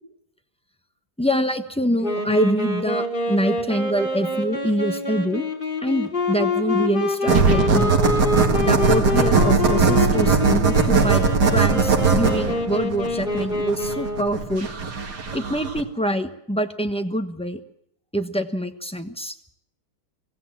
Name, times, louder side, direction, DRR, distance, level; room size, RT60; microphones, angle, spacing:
voice 1, 1.2-5.4 5.8-7.9 8.6-11.3 11.5-14.7 15.3-17.6 18.1-19.3, equal, 5° left, 6 dB, 0.9 m, -25 dB
Wind instrument woodwind instrument, 2.0-14.5, left 2 dB, 30° left, 3.0 m, -26 dB
sound 1, 7.3-15.8, right 5 dB, 75° right, 2.5 m, -19 dB
25.0 x 16.0 x 7.5 m, 0.77 s
omnidirectional pair, 1.8 m